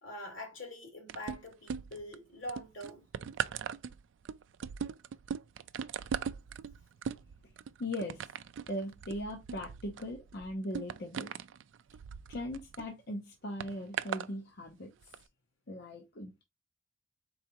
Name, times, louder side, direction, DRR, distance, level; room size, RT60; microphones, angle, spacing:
voice 1, 0.0-3.0, left 1 dB, 80° left, 2.5 m, -44 dB
sound 1, 1.1-2.1 2.5-12.9 13.6-14.3 15.0-15.2, right 7 dB, 65° right, 0.3 m, -39 dB
voice 2, 7.8-8.3 8.7-11.3 12.3-15.2 15.7-16.4, left 1 dB, 55° left, 0.7 m, -39 dB
4.7 x 3.9 x 2.9 m
head